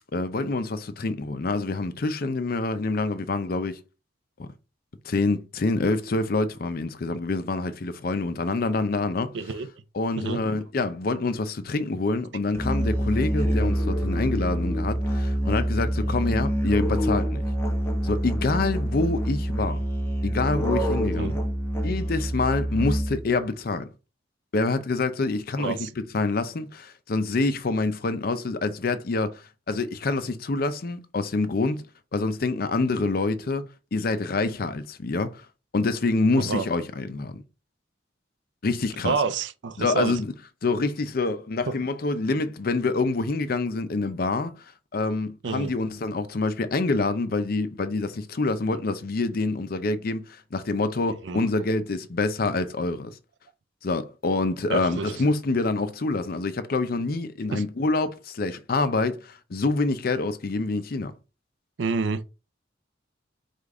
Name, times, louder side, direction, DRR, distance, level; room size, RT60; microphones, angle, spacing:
voice 1, 0.1-3.8 4.4-4.5 5.0-9.3 9.9-17.4 18.0-19.8 20.2-21.3 21.8-23.9 24.5-31.8 32.1-33.7 33.9-35.5 35.7-37.4 38.6-39.2 39.8-40.3 40.6-53.2 53.8-61.1, left 3 dB, 50° left, 0.5 m, -26 dB
voice 2, 9.3-9.7 10.2-10.4 21.2-21.3 25.6-25.9 36.4-36.7 39.0-40.2 45.4-45.7 51.2-51.5 54.7-55.1 57.5-57.6 61.8-62.2, right 4 dB, 70° right, 0.4 m, -28 dB
Musical instrument, 12.5-23.3, equal, 15° left, 0.8 m, -26 dB
5.0 x 2.4 x 3.7 m
head